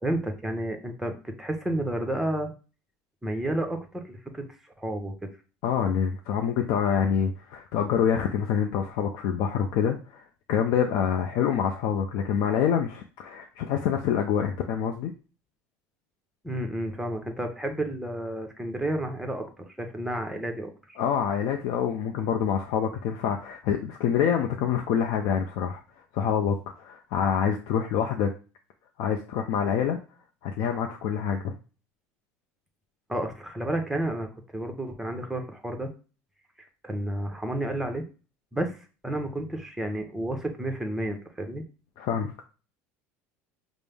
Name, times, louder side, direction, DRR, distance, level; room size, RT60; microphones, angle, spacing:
voice 1, 0.0-2.5 3.2-4.4 4.8-5.3 16.4-21.0 33.1-35.9 36.8-38.0 38.5-41.6, right 1 dB, 5° right, 5 dB, 0.8 m, -31 dB
voice 2, 5.6-10.2 10.5-15.1 21.0-25.8 26.1-28.3 29.0-30.0 30.4-31.5 42.0-42.3, left 8 dB, 65° left, 3 dB, 0.5 m, -26 dB
5.2 x 2.0 x 3.4 m, 0.35 s
supercardioid pair, 95°, 7 cm